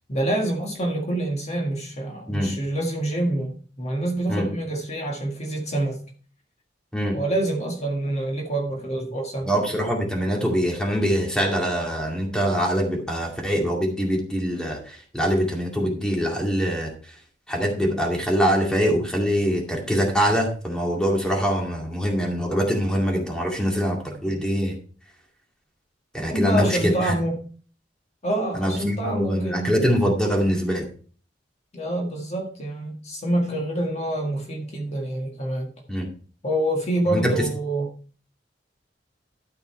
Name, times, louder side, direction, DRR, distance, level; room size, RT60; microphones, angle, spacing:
voice 1, 0.1-6.0 7.1-9.5 26.3-27.4 28.2-29.8 31.7-35.7 36.4-37.9, right 1 dB, 40° left, 1 dB, 1.8 m, -26 dB
voice 2, 9.4-16.9 17.5-24.7 26.1-27.1 28.5-30.9 35.9-36.1 37.1-37.3, equal, 5° left, 0 dB, 2.3 m, -23 dB
12.5 x 5.6 x 4.4 m, 0.40 s
head